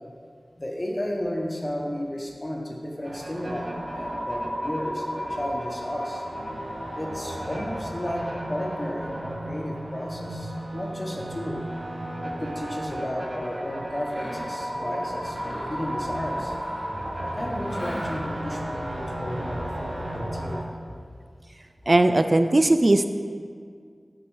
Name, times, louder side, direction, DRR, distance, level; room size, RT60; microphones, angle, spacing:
voice 1, 0.6-6.2 6.9-8.2 8.5-11.6 12.2-16.5 17.2-20.7, equal, 30° left, 0 dB, 1.1 m, -33 dB
sound 1, 3.0-20.6, equal, 70° right, 1.0 m, -33 dB
Mechanisms, 13.9-14.6 15.1-17.0 17.6-18.4, equal, 75° left, 2.0 m, -42 dB
voice 2, 21.9-23.0, right 2 dB, 45° right, 8 dB, 0.3 m, -19 dB
6.3 x 4.3 x 6.3 m, 2.1 s
wide cardioid pair, 45°, 0 cm